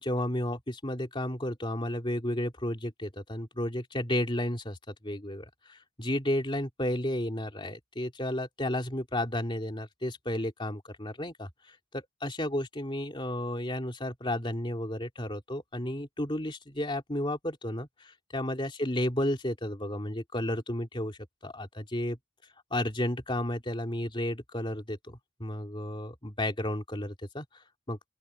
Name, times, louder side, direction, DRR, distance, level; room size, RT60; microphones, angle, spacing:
voice 1, 0.1-22.2 22.7-28.1, left 1 dB, 20° left, 3.1 m, -33 dB
open air
head